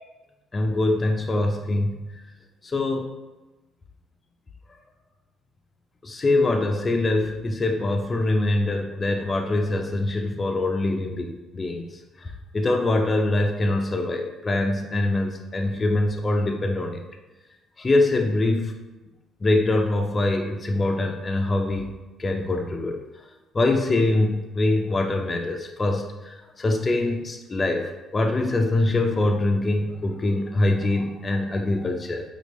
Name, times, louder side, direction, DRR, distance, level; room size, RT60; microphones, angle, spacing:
voice 1, 0.5-2.0 2.6-3.1 6.0-11.8 12.2-17.0 17.8-18.7 19.4-23.0 23.5-32.2, left 2 dB, 30° left, 3 dB, 0.4 m, -24 dB
4.4 x 2.4 x 3.1 m, 1.1 s
cardioid pair, 90°, 0 cm